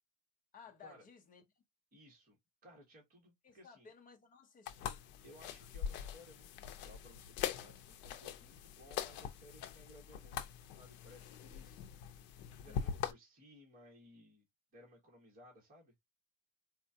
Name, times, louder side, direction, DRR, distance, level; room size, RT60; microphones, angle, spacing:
voice 1, 0.5-1.4 3.4-5.0 12.7-12.9, left 5 dB, 25° left, 0.7 m, -58 dB
voice 2, 1.9-3.9 5.2-10.4 10.7-11.8 12.6-14.5 14.7-15.9, left 1 dB, 25° right, 1.5 m, -60 dB
sound 1, 4.7-13.1, left 8 dB, 70° left, 0.7 m, -43 dB
4.4 x 2.4 x 2.7 m
cardioid pair, 175°, 37 cm